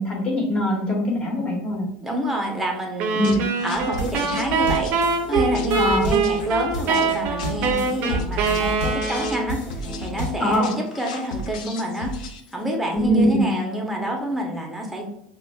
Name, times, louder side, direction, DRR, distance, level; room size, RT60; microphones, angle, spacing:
voice 1, 0.0-1.9 3.2-3.4 5.7-6.1 10.4-10.7 12.9-13.5, equal, 25° left, -2 dB, 1.3 m, -22 dB
voice 2, 2.0-3.2 3.6-12.1 12.5-15.1, equal, 5° right, 0 dB, 0.8 m, -27 dB
sound 1, 3.0-9.6, right 5 dB, 55° right, 0.5 m, -24 dB
sound 2, 3.2-12.7, left 1 dB, 90° left, 0.5 m, -36 dB
sound 3, 3.7-10.6, equal, 60° left, 1.4 m, -32 dB
5.7 x 2.1 x 2.3 m, 0.80 s
supercardioid pair, 115°, 4 cm